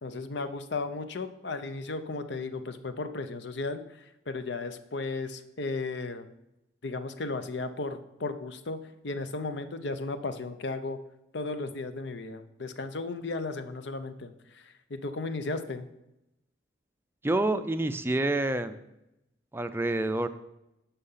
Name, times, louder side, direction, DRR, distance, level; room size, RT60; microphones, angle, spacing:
voice 1, 0.0-6.3 6.8-11.0 11.3-15.9, left 3 dB, 65° left, 10 dB, 0.7 m, -35 dB
voice 2, 17.2-18.7 19.5-20.3, right 2 dB, 10° right, 10 dB, 0.4 m, -27 dB
10.0 x 5.7 x 5.7 m, 0.89 s
head